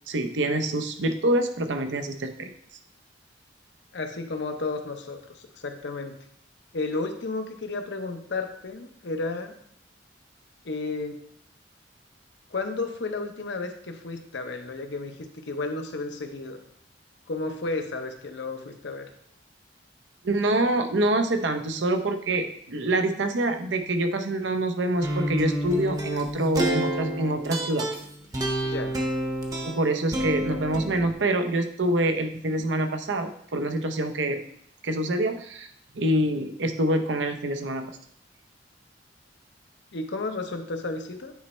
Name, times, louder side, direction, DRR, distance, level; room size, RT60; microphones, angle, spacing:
voice 1, 0.1-2.5 20.2-27.9 29.7-34.4 34.8-35.7 35.9-37.8, right 1 dB, 80° right, 7 dB, 0.7 m, -26 dB
voice 2, 3.9-6.2 6.7-9.5 10.6-11.2 12.5-16.6 17.3-19.1 28.6-29.0 39.9-41.3, left 3 dB, 70° left, 5 dB, 0.8 m, -32 dB
sound 1, 25.0-31.1, right 1 dB, 20° right, 0.8 m, -29 dB
9.2 x 3.2 x 4.3 m, 0.66 s
head